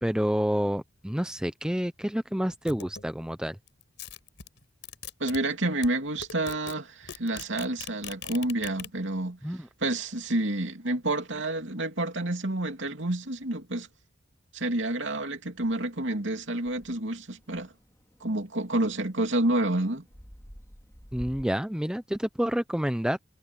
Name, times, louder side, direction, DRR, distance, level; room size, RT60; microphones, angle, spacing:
voice 1, 0.0-3.6 9.4-9.7 21.1-23.2, equal, 5° right, 0.6 m, -28 dB
sound 1, 2.7-3.1 3.7-5.4 5.8-5.9 6.2-6.7 7.0-8.9, left 7 dB, 65° left, 6.1 m, -40 dB
voice 2, 5.2-9.4 9.8-13.9 14.5-17.7 18.2-20.0, right 1 dB, 70° right, 2.9 m, -29 dB
sound 2, 15.6-21.4, equal, 15° left, 3.6 m, -51 dB
head